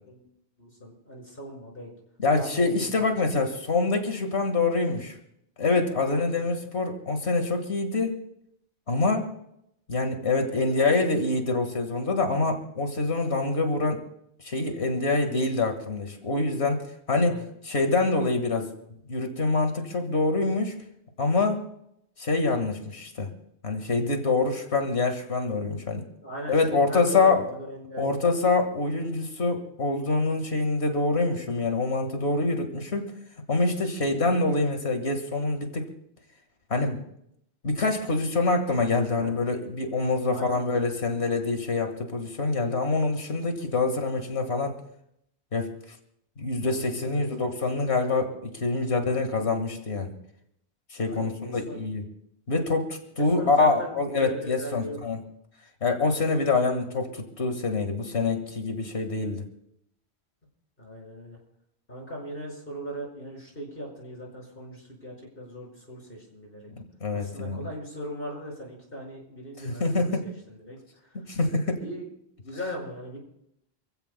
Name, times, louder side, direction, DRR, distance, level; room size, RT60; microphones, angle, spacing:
voice 1, 0.6-1.9 2.3-3.0 6.0-6.5 10.8-11.1 17.2-17.5 26.2-26.5 26.9-28.2 39.1-39.3 40.3-40.6 47.1-47.3 51.0-51.8 53.4-53.9 54.2-55.0 60.8-61.4 61.9-66.7 67.1-70.8 71.8-72.1 72.4-73.2, equal, 60° left, -1 dB, 5.7 m, -39 dB
voice 2, 2.2-5.2 5.6-8.2 8.9-9.3 9.9-14.0 14.4-18.7 19.1-20.8 21.2-21.6 22.2-23.3 23.6-26.0 26.5-27.5 28.0-33.1 33.5-35.9 36.7-37.0 37.6-44.8 45.5-45.7 46.4-50.1 50.9-52.1 52.5-55.2 55.8-59.4 67.0-67.7 69.6-70.3 71.1-71.8, left 3 dB, 85° left, 5 dB, 2.1 m, -25 dB
28.0 x 15.0 x 2.2 m, 0.75 s
omnidirectional pair, 1.1 m